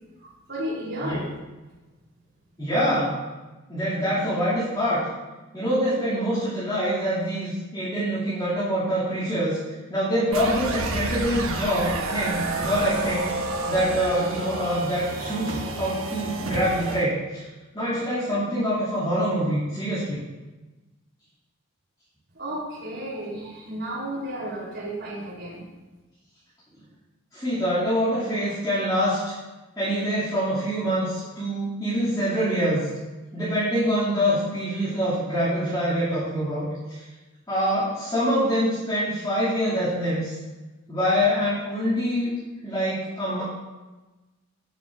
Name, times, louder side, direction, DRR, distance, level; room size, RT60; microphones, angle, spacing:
voice 1, 0.2-1.3 22.3-25.6, right 1 dB, 60° right, -5 dB, 3.7 m, -33 dB
voice 2, 2.6-3.2 3.7-5.1 5.5-9.6 9.9-17.5 17.7-20.2 27.3-29.2 29.8-32.9 33.3-37.0 37.5-40.3 40.9-42.3 42.6-43.4, equal, 20° left, -12 dB, 2.7 m, -25 dB
sound 1, 10.3-17.0, right 2 dB, 80° right, 1.1 m, -30 dB
16.5 x 7.3 x 2.6 m, 1.2 s
head